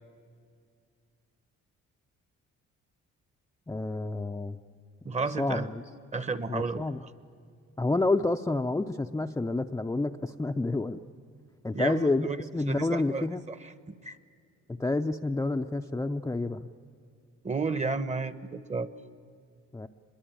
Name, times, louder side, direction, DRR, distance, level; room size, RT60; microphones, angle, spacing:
voice 1, 3.7-4.6 5.4-5.8 6.5-7.0 7.8-11.0 11.6-13.4 14.8-16.7 19.7-19.9, left 2 dB, 10° left, 4 dB, 0.5 m, -29 dB
voice 2, 5.0-5.7 6.1-6.9 11.7-12.4 12.7-13.7 14.0-14.1 17.4-18.9, right 4 dB, 25° right, 14 dB, 1.0 m, -32 dB
24.0 x 21.5 x 8.9 m, 2.2 s
cardioid pair, 90°, 30 cm